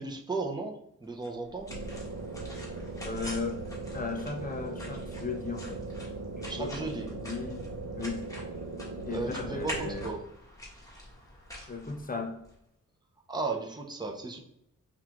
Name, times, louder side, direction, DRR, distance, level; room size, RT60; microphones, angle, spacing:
voice 1, 0.0-1.7 6.5-7.1 9.1-10.2 13.3-14.4, right 3 dB, 15° right, 1 dB, 0.6 m, -35 dB
sound 1, 1.2-12.5, left 1 dB, 10° left, 1.2 m, -45 dB
sound 2, 1.7-10.1, right 3 dB, 60° right, 0.7 m, -39 dB
voice 2, 3.0-3.7 3.9-5.8 6.4-7.7 8.0-8.3 9.1-10.1 11.7-12.4, left 4 dB, 25° left, 5 dB, 0.5 m, -36 dB
5.3 x 2.5 x 3.0 m, 0.79 s
wide cardioid pair, 95°, 33 cm